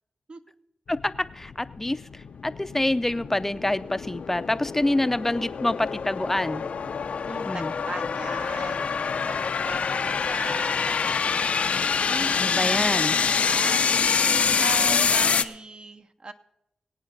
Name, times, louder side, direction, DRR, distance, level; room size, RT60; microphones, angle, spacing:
sound 1, 0.9-15.4, left 6 dB, 75° left, 0.5 m, -26 dB
voice 1, 0.9-6.6 7.5-7.7 12.3-13.2, left 1 dB, 15° left, 13 dB, 0.5 m, -26 dB
voice 2, 7.3-13.1 13.4-16.3, right 3 dB, 45° right, 9 dB, 0.7 m, -39 dB
23.5 x 8.8 x 3.9 m, 0.86 s
wide cardioid pair, 100°, 2 cm